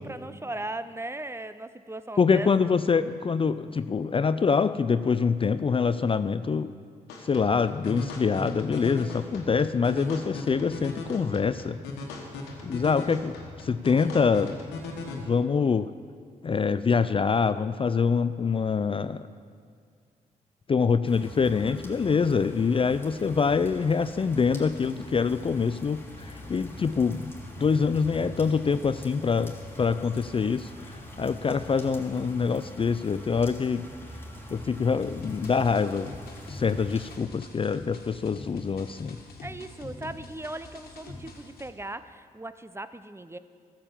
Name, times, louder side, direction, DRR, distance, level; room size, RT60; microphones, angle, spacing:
voice 1, 0.0-2.7 39.4-43.4, right 2 dB, 15° right, 13 dB, 0.6 m, -38 dB
voice 2, 2.2-6.7 7.2-11.8 12.6-14.6 15.1-15.9 16.4-19.3 20.7-27.3 27.6-33.8 34.5-36.1 36.5-39.2, left 5 dB, 35° left, 13 dB, 0.4 m, -25 dB
sound 1, 7.1-15.1, left 3 dB, 90° left, 1.3 m, -38 dB
sound 2, 21.0-37.2, equal, 15° left, 3.1 m, -44 dB
sound 3, 35.0-41.7, left 2 dB, 65° left, 1.7 m, -44 dB
13.0 x 7.6 x 7.0 m, 2.1 s
hypercardioid pair, 45°, 17 cm